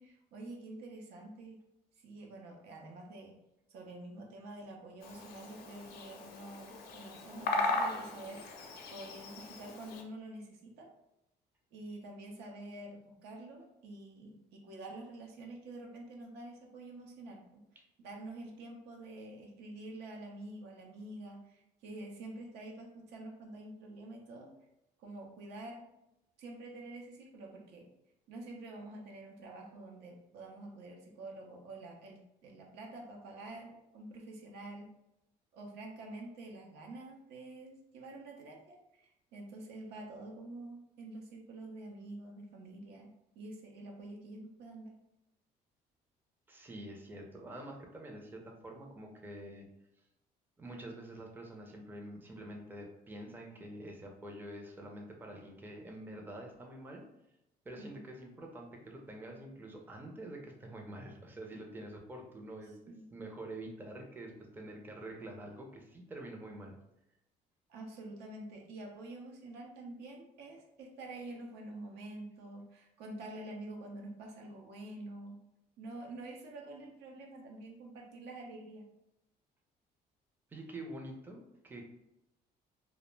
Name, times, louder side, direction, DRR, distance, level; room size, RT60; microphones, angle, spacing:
voice 1, 0.0-1.6 2.0-3.4 3.7-8.4 8.9-10.9 11.7-24.5 25.0-25.8 26.4-27.9 28.3-34.9 35.5-44.9 57.7-58.0 62.9-63.0 67.7-75.4 75.8-78.9, right 2 dB, 80° right, 1 dB, 0.6 m, -47 dB
Bird vocalization bird call bird song, 5.0-10.0, left 3 dB, 65° left, 0.4 m, -38 dB
voice 2, 46.5-49.7 50.6-57.0 57.7-62.8 63.1-66.7 80.5-81.8, right 1 dB, 10° right, 1 dB, 0.4 m, -46 dB
2.3 x 2.0 x 3.1 m, 0.86 s
cardioid pair, 110°, 17 cm